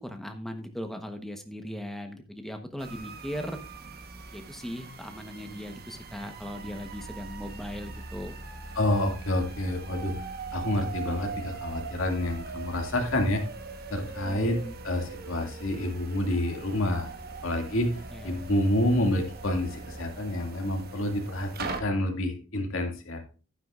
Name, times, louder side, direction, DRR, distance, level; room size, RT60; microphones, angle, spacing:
voice 1, 0.0-3.6 4.3-8.3 14.1-14.8 18.1-18.4, equal, ahead, 6 dB, 1.0 m, -38 dB
sound 1, 2.8-21.8, right 3 dB, 45° right, 1.2 m, -41 dB
voice 2, 8.8-10.1 10.5-13.4 13.9-14.6 14.8-17.1 17.4-17.9 18.2-23.2, left 1 dB, 65° left, 3 dB, 2.2 m, -28 dB
11.5 x 9.7 x 2.5 m, 0.36 s
head